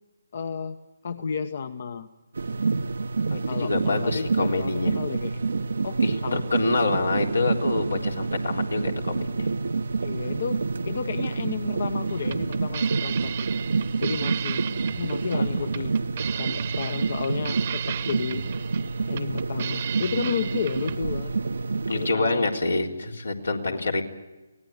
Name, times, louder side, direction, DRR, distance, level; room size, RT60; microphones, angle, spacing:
voice 1, 0.3-0.8 1.0-2.1 3.4-5.4 5.8-6.4 10.0-13.3 14.0-14.7 14.9-15.9 16.4-18.4 19.1-21.3 21.9-22.5 23.6-23.9, left 6 dB, 50° left, 11 dB, 1.1 m, -32 dB
sound 1, 2.3-22.1, right 4 dB, 65° right, 0.8 m, -28 dB
voice 2, 3.3-4.9 6.0-9.5 15.3-15.7 21.9-24.0, left 3 dB, 80° left, 2 dB, 3.9 m, -26 dB
sound 2, 12.1-21.0, right 9 dB, 40° right, 1.1 m, -35 dB
24.0 x 18.0 x 9.6 m, 1.1 s
figure-of-eight pair, 150°, 0 cm